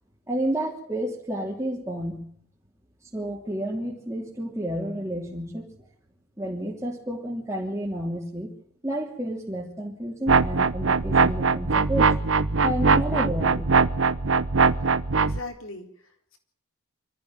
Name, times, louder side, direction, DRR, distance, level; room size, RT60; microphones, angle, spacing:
voice 1, 0.3-2.2 3.1-5.6 6.4-8.5 8.8-12.1 12.6-13.7, right 1 dB, 15° right, -6 dB, 3.2 m, -30 dB
sound 1, 10.3-15.4, right 4 dB, 60° right, 0.8 m, -21 dB
voice 2, 15.2-16.4, left 2 dB, 60° left, 5 dB, 3.9 m, -40 dB
24.5 x 14.5 x 9.0 m, 0.63 s
head